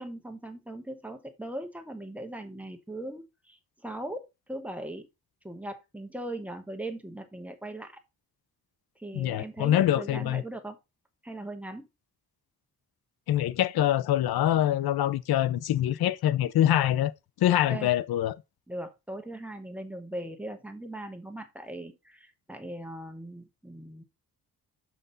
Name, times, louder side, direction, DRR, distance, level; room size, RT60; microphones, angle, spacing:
voice 1, 0.0-4.2 4.5-5.1 5.4-8.0 9.0-10.8 11.2-11.9 17.7-17.9 18.7-24.0, right 1 dB, 5° right, 1.0 m, -39 dB
voice 2, 9.1-10.4 13.3-17.1 17.4-18.4, left 12 dB, 85° left, 0.6 m, -25 dB
6.9 x 5.9 x 4.0 m
wide cardioid pair, 180°, 37 cm